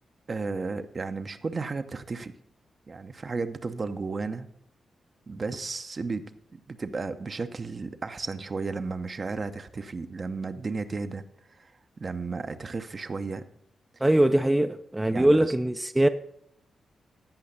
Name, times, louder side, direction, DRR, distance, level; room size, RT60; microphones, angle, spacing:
voice 1, 0.3-2.3 2.9-4.5 5.3-11.2 11.6-11.7 12.0-13.5 15.1-15.5, right 4 dB, 45° right, 0.8 m, -33 dB
voice 2, 14.0-16.1, right 1 dB, 15° right, 0.6 m, -22 dB
15.0 x 5.7 x 5.4 m
supercardioid pair, 45°, 0 cm